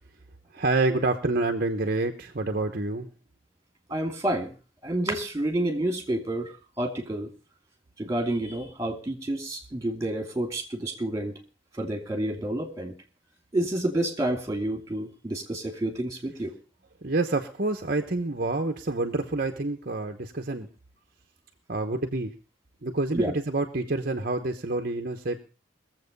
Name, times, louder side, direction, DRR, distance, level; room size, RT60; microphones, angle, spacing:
voice 1, 0.5-3.1 17.0-20.7 21.7-22.3 22.8-25.4, right 2 dB, 50° right, 5 dB, 1.0 m, -27 dB
voice 2, 3.9-4.5 4.8-7.3 8.0-11.4 11.8-13.0 13.5-16.5 23.1-23.3, right 1 dB, 15° right, 4 dB, 2.8 m, -29 dB
21.5 x 7.7 x 5.3 m, 0.35 s
head